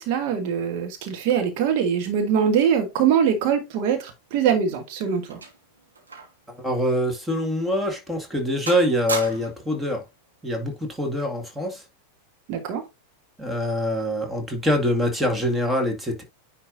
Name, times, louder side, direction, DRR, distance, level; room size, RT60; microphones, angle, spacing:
voice 1, 0.0-5.4 12.5-12.8, right 8 dB, 45° right, 1.6 m, -23 dB
sound 1, 4.6-6.5 6.8-6.9 7.6-7.7 8.1-8.4 8.7-9.7 10.7-11.0, right 3 dB, 75° right, 2.6 m, -35 dB
voice 2, 6.6-10.0 10.4-11.8 13.4-16.2, equal, 5° right, 2.1 m, -24 dB
9.9 x 4.5 x 2.6 m
figure-of-eight pair, 90°, 0 cm